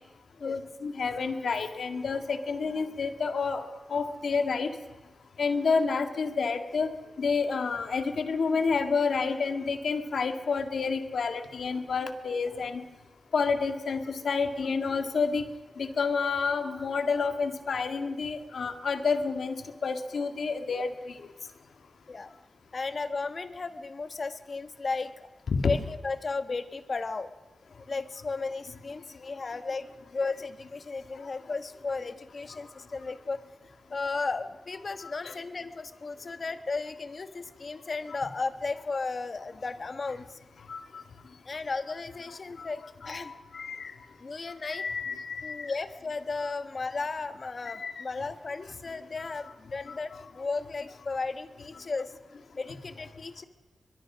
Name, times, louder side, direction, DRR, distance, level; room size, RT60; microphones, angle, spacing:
voice 1, 0.4-3.6 3.9-4.7 5.4-6.9 7.2-12.8 13.3-15.4 15.8-19.5 19.8-21.2 25.5-25.7 31.1-31.2 35.0-35.3 40.7-41.0 42.6-42.7 43.0-43.9 44.6-45.7 47.7-48.0 49.2-49.3 49.9-50.0, left 5 dB, 75° left, 7 dB, 2.0 m, -29 dB
voice 2, 22.7-25.3 25.6-27.3 27.7-33.4 33.9-40.4 41.4-43.3 44.2-44.9 45.4-52.1 52.6-53.4, left 3 dB, 50° left, 10 dB, 1.4 m, -35 dB
23.5 x 22.5 x 6.3 m, 1.2 s
wide cardioid pair, 95°, 0 cm